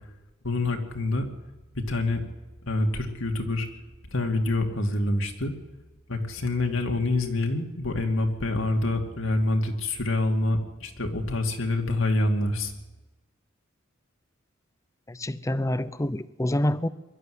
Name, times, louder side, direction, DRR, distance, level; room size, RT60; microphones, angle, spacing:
voice 1, 0.4-1.3 1.7-2.2 2.6-3.7 4.1-5.5 6.1-12.7, left 2 dB, 70° left, 3 dB, 2.6 m, -26 dB
voice 2, 15.1-16.9, left 1 dB, 15° left, 16 dB, 0.7 m, -27 dB
22.5 x 12.0 x 9.7 m, 1.1 s
head